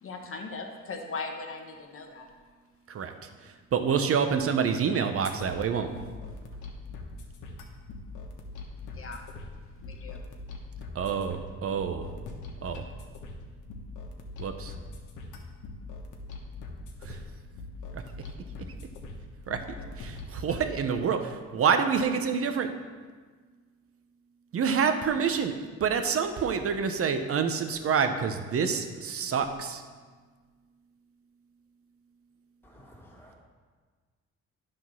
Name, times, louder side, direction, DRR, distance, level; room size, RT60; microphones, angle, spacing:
voice 1, 0.0-2.3 8.9-9.2 9.8-10.2, left 4 dB, 45° left, 3 dB, 1.3 m, -39 dB
voice 2, 3.4-6.0 10.9-12.1 12.6-12.9 14.4-14.7 17.0-17.2 17.9-18.0 19.5-22.7 24.5-25.5 25.8-29.8, right 6 dB, 50° right, 7 dB, 0.8 m, -27 dB
sound 1, 5.2-20.7, left 3 dB, 80° left, 1.2 m, -42 dB
voice 3, 32.6-33.4, equal, 5° left, -3 dB, 2.2 m, -53 dB
10.5 x 3.8 x 6.1 m, 1.5 s
cardioid pair, 90°, 30 cm